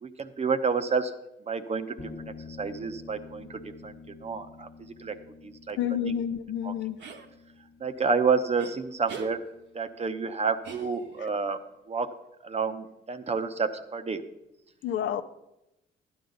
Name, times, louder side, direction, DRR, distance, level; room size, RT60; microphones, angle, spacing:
voice 1, 0.0-1.1 1.5-4.7 5.0-5.2 5.4-5.8 6.0-6.1 6.6-6.7 7.8-9.4 9.7-11.6 11.9-12.1 12.4-14.2, right 5 dB, 30° right, 9 dB, 0.8 m, -29 dB
sound 1, 2.0-11.5, left 4 dB, 35° left, 1.1 m, -49 dB
voice 2, 5.8-7.0 14.8-15.2, left 9 dB, 75° left, 10 dB, 0.7 m, -29 dB
sound 2, 7.0-7.3 8.6-8.7 9.1-9.3 10.6-11.3, right 6 dB, 65° right, 1.3 m, -40 dB
12.0 x 9.7 x 3.9 m, 0.91 s
cardioid pair, 90°, 20 cm